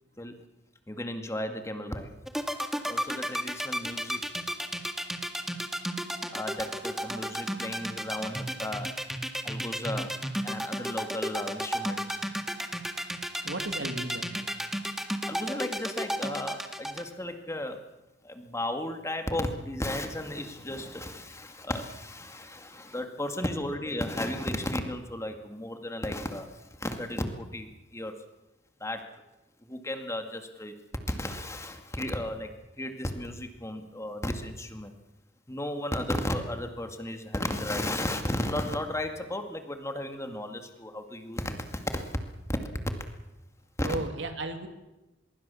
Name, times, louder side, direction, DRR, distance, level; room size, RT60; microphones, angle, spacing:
voice 1, 0.9-2.1 2.9-4.2 6.3-8.9 9.4-10.1 10.4-12.2 15.3-17.8 18.2-28.2 28.8-29.1 29.7-30.7 31.1-32.5 32.8-34.9 35.5-42.2 42.5-42.6 43.8-43.9, left 1 dB, 15° left, 6 dB, 2.1 m, -34 dB
sound 1, 2.3-17.0, equal, ahead, 1.9 m, -32 dB
voice 2, 13.4-14.4 43.8-44.7, right 2 dB, 80° right, 6 dB, 2.8 m, -34 dB
24.5 x 22.0 x 7.0 m, 1.0 s
head